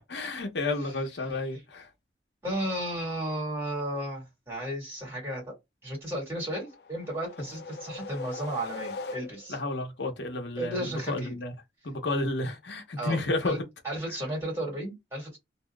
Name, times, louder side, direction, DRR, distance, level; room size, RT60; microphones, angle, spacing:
voice 1, 0.1-1.9 9.5-11.5 11.8-13.5, left 2 dB, 80° left, 0.9 m, -31 dB
voice 2, 2.4-5.6 5.8-9.6 10.6-11.3 13.0-13.6 13.8-15.4, right 1 dB, 15° right, 2.0 m, -34 dB
sound 1, 6.6-9.7, left 3 dB, 60° left, 0.4 m, -41 dB
2.9 x 2.8 x 2.3 m
head